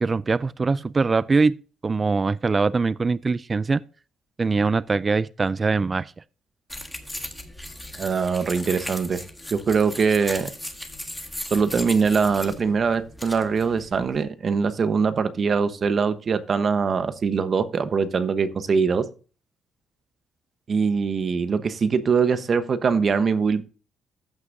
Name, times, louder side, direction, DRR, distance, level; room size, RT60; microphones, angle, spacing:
voice 1, 0.0-1.6 1.8-3.8 4.4-6.1, right 4 dB, 30° right, 0.3 m, -22 dB
sound 1, 6.7-14.2, left 1 dB, 5° left, 1.6 m, -37 dB
voice 2, 8.0-9.2 9.5-10.5 11.5-19.1 20.7-23.6, right 5 dB, 45° right, 1.0 m, -22 dB
14.0 x 6.1 x 2.7 m
cardioid pair, 90°, 0 cm